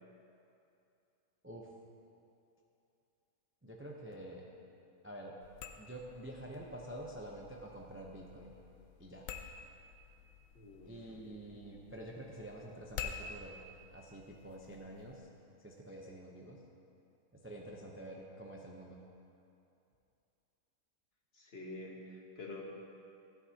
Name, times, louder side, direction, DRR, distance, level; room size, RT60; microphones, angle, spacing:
voice 1, 3.6-4.5 5.0-5.4 5.8-8.6 9.0-9.3 10.8-13.6 13.9-15.3 15.6-16.6 17.3-19.0, right 1 dB, 15° right, -1 dB, 0.4 m, -48 dB
sound 1, 5.4-15.2, left 6 dB, 70° left, 1.0 m, -50 dB
voice 2, 10.5-10.9 21.3-22.6, left 2 dB, 45° left, -1 dB, 1.4 m, -47 dB
15.0 x 9.6 x 2.8 m, 2.7 s
omnidirectional pair, 1.6 m